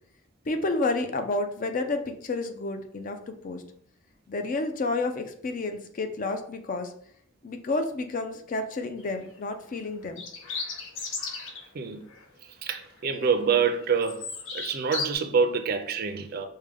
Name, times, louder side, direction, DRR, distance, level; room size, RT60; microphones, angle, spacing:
voice 1, 0.5-3.6 4.3-6.9 7.4-10.2, left 3 dB, 40° left, 0.4 m, -30 dB
sound 1, 9.0-9.3 10.1-11.7 12.1-12.2 12.7-13.4 13.7-15.1, left 4 dB, 75° left, 0.7 m, -35 dB
voice 2, 12.6-14.2 14.5-16.5, right 5 dB, 50° right, 0.4 m, -26 dB
4.8 x 2.2 x 3.3 m
head